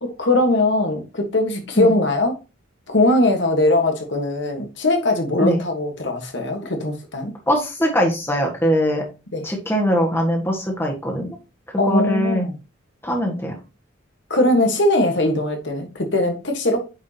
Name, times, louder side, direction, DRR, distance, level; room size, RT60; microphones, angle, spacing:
voice 1, 0.0-2.4 2.9-7.3 9.3-9.4 11.8-12.5 14.3-16.9, left 1 dB, 60° left, 1.5 m, -20 dB
voice 2, 7.5-9.0 9.4-11.4 11.8-12.4 13.0-13.5, equal, 10° left, 1.6 m, -21 dB
9.0 x 5.2 x 2.9 m
head